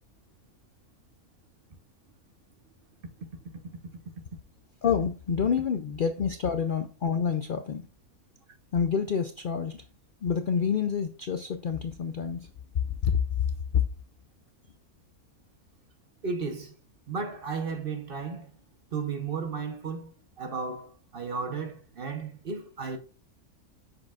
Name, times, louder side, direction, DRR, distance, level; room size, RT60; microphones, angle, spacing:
voice 1, 4.8-7.8 8.7-9.8 10.2-12.5 13.0-13.2 13.7-13.8, left 7 dB, 60° left, 0.5 m, -27 dB
voice 2, 16.2-16.7 17.1-18.5 18.9-20.1 20.4-23.0, right 5 dB, 45° right, 1.0 m, -34 dB
7.6 x 6.3 x 2.4 m
omnidirectional pair, 1.5 m